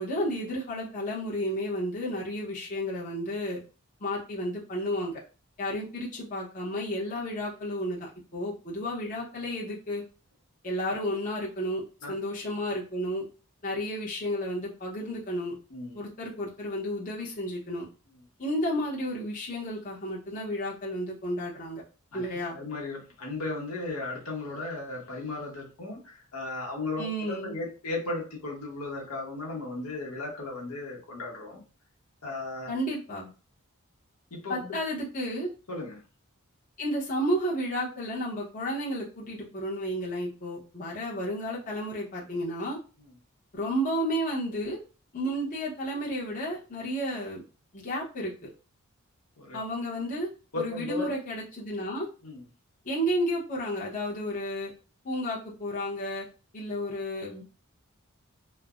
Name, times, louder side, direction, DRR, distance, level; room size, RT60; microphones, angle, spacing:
voice 1, 0.0-3.6 4.0-5.2 5.6-10.0 10.6-13.2 13.6-15.6 15.9-17.9 18.4-21.8 22.1-22.6 27.0-27.5 32.7-33.3 34.5-35.5 36.8-42.8 43.5-44.8 45.1-47.4 47.7-48.5 49.5-50.3 50.5-52.1 52.8-54.7 55.0-56.3 56.5-57.4, equal, 35° left, -5 dB, 0.7 m, -32 dB
voice 2, 22.5-31.6 32.2-32.7 34.3-34.8 35.7-36.0 49.4-49.6 50.5-51.1 52.2-52.4, left 2 dB, 85° left, -1 dB, 0.9 m, -35 dB
3.2 x 2.0 x 2.4 m, 0.35 s
head